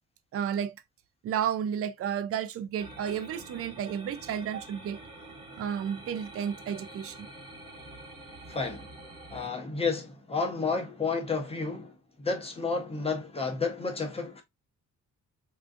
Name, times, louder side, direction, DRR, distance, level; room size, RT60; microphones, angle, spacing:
voice 1, 0.3-0.8 1.2-5.0 5.6-7.3, right 8 dB, 50° right, 0.5 m, -32 dB
sound 1, 2.8-9.5, right 2 dB, 15° right, 1.1 m, -47 dB
voice 2, 8.5-8.9 9.3-14.4, left 4 dB, 20° left, 0.7 m, -31 dB
3.7 x 2.4 x 2.5 m
cardioid pair, 145°, 30 cm